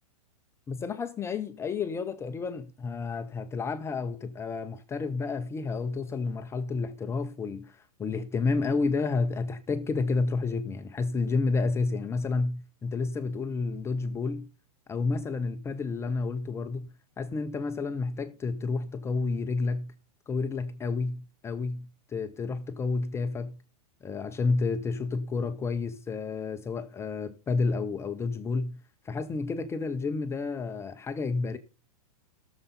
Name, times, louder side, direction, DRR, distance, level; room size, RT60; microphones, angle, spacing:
voice 1, 0.7-14.5 14.9-16.9 17.2-19.9 20.3-23.6 24.0-28.8 29.0-31.6, left 4 dB, 15° left, 0.6 m, -30 dB
16.0 x 7.0 x 4.1 m
hypercardioid pair, 140°, 20 cm